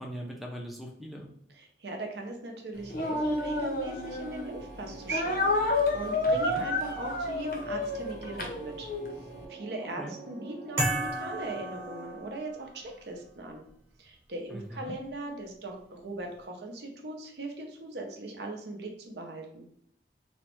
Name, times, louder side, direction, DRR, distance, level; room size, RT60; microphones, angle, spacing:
voice 1, 0.0-1.3 6.3-6.6 10.0-10.1 14.5-14.9, equal, ahead, 0 dB, 0.3 m, -40 dB
voice 2, 1.6-8.9 9.5-13.6 14.0-19.7, right 2 dB, 70° right, 2 dB, 0.6 m, -39 dB
Speech, 2.9-4.5 5.1-9.1, left 2 dB, 50° left, 0.6 m, -30 dB
sound 1, 3.0-12.2, right 2 dB, 90° right, 1.0 m, -47 dB
sound 2, 10.8-12.7, right 1 dB, 15° right, 0.9 m, -32 dB
3.1 x 2.1 x 3.0 m, 0.70 s
head